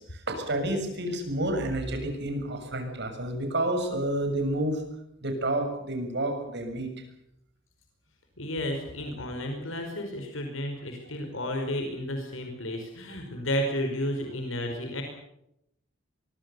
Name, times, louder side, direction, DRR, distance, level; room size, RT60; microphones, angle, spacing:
voice 1, 0.0-4.8 5.2-6.9, right 1 dB, 60° right, 5 dB, 6.8 m, -29 dB
voice 2, 8.4-15.0, left 1 dB, 80° left, 3 dB, 5.0 m, -32 dB
24.5 x 22.5 x 7.0 m, 0.78 s
head